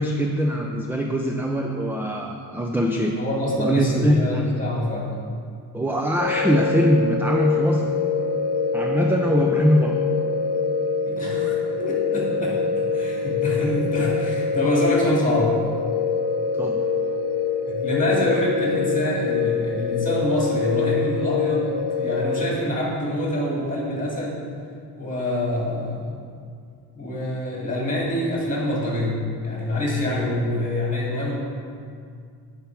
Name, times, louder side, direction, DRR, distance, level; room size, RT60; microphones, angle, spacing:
voice 1, 0.0-3.2 3.6-4.2 5.7-7.8 8.7-9.9 16.6-16.8, equal, 5° right, 1 dB, 0.4 m, -22 dB
voice 2, 3.2-5.1 11.1-15.5 17.7-21.7 22.0-24.4 25.0-26.2 27.0-31.4, left 1 dB, 20° left, -4 dB, 2.2 m, -25 dB
sound 1, 6.2-22.5, left 5 dB, 75° left, 0.7 m, -25 dB
8.3 x 5.7 x 4.6 m, 2.2 s
cardioid pair, 120°, 41 cm